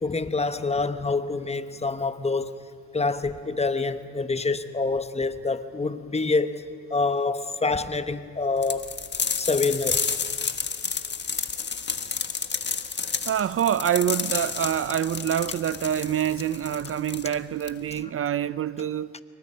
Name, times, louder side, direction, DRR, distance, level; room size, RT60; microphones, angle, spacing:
voice 1, 0.0-2.6 2.9-6.6 6.9-8.8 9.4-10.0, left 3 dB, 20° left, 1.1 m, -26 dB
sound 1, 8.6-18.0, left 6 dB, 35° left, 1.5 m, -30 dB
voice 2, 13.3-19.1, right 10 dB, 45° right, 0.6 m, -26 dB
27.0 x 23.5 x 5.6 m
cardioid pair, 90°, 30 cm